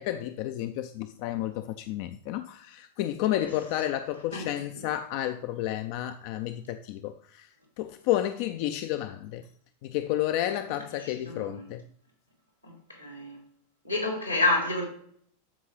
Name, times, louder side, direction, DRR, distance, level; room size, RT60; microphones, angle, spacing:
voice 1, 0.0-7.5 7.8-9.4 9.8-11.8, left 13 dB, 45° left, 0.4 m, -31 dB
voice 2, 11.0-11.7 12.6-13.4 13.8-14.8, left 2 dB, 85° left, 3.1 m, -29 dB
13.5 x 5.1 x 3.2 m
figure-of-eight pair, 90°, 0 cm